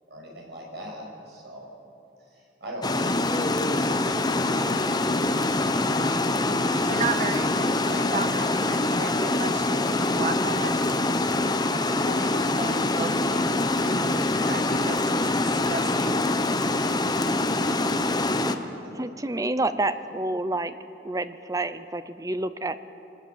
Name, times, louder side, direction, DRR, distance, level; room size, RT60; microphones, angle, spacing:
voice 1, 0.1-1.6 2.3-3.9 17.4-17.5 18.8-18.9, equal, 70° right, -2 dB, 6.8 m, -40 dB
Water, 2.8-18.5, left 2 dB, 25° left, 1.0 m, -24 dB
voice 2, 6.5-10.7 11.6-13.5 14.4-15.2 15.5-16.1, right 4 dB, 45° right, 7 dB, 1.5 m, -34 dB
voice 3, 19.0-20.7 21.0-22.9, right 2 dB, 20° right, 12 dB, 0.7 m, -28 dB
24.5 x 20.0 x 7.4 m, 2.9 s
head